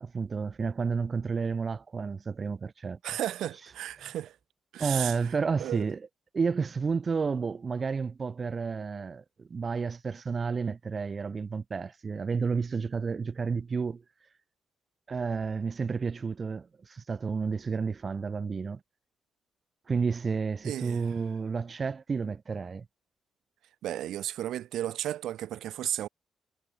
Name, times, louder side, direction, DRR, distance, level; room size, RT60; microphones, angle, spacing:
voice 1, 0.0-3.0 4.0-4.1 4.8-6.1 6.3-14.0 15.1-18.8 19.9-22.9, right 5 dB, 30° right, 0.4 m, -31 dB
voice 2, 3.0-4.4 4.7-5.3 5.6-5.8 20.6-21.1 23.8-26.1, right 12 dB, 85° right, 0.9 m, -34 dB
cardioid pair, 145°, 0 cm